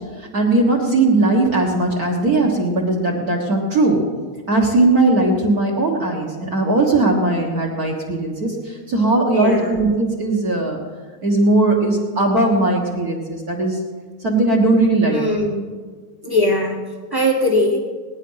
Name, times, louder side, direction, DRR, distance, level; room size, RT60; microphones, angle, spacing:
voice 1, 0.3-4.0 4.5-10.8 11.2-13.8 14.2-15.2, right 2 dB, 40° right, -1 dB, 1.7 m, -18 dB
voice 2, 9.3-9.8 15.1-15.6 16.2-16.8 17.1-17.8, left 1 dB, 10° right, 1 dB, 1.2 m, -20 dB
19.5 x 10.0 x 5.7 m, 1.5 s
omnidirectional pair, 3.3 m